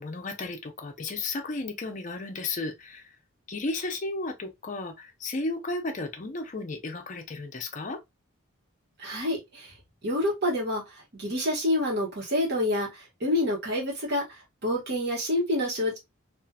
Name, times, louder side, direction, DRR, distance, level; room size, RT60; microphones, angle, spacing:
voice 1, 0.0-3.1 3.5-8.0, left 3 dB, 35° left, 0.5 m, -34 dB
voice 2, 9.0-9.7 10.0-10.8 11.1-14.2 14.6-16.0, left 1 dB, 50° right, 1.2 m, -27 dB
2.7 x 2.4 x 2.2 m
head